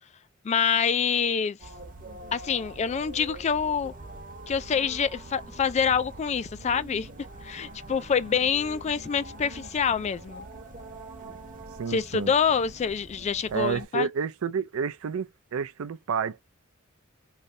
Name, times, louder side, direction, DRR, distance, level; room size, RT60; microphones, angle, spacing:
voice 1, 0.4-1.6 2.3-3.9 4.5-7.1 7.4-10.5 11.9-14.1, left 7 dB, 30° left, 0.3 m, -26 dB
sound 1, 1.6-13.8, right 1 dB, 40° right, 0.9 m, -44 dB
voice 2, 11.8-12.3 13.5-16.4, right 6 dB, 75° right, 0.4 m, -30 dB
3.2 x 2.6 x 2.6 m
head